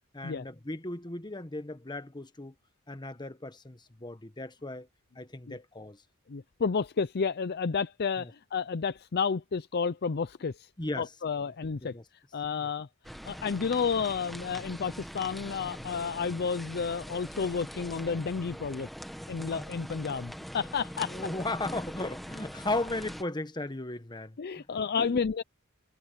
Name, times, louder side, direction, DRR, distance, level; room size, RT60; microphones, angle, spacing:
voice 1, 0.1-2.5 2.9-4.9 5.1-6.0 8.2-8.3 10.8-11.1 11.8-12.0 12.6-12.7 15.8-16.1 21.0-24.7 25.0-25.2, left 2 dB, 20° left, 1.3 m, -36 dB
voice 2, 6.3-10.7 11.0-11.9 12.3-12.9 13.3-18.9 19.3-21.1 24.4-25.4, left 5 dB, 45° left, 0.5 m, -31 dB
sound 1, 13.0-23.2, equal, ahead, 1.6 m, -42 dB
head